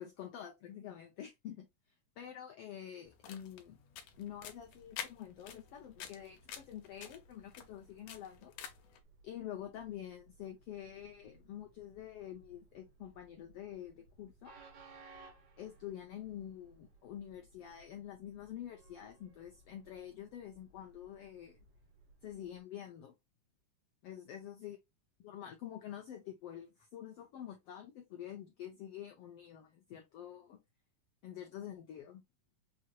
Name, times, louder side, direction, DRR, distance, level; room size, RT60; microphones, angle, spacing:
voice 1, 0.0-1.7 2.2-3.8 4.2-8.5 9.2-14.5 15.6-21.6 22.2-23.1 24.0-24.8 25.2-30.6 31.2-32.2, left 10 dB, 90° left, 1.3 m, -47 dB
sound 1, 3.1-9.0, left 9 dB, 70° left, 1.7 m, -49 dB
Train, 4.1-22.6, right 3 dB, 60° right, 2.2 m, -63 dB
6.2 x 2.9 x 2.2 m
omnidirectional pair, 3.6 m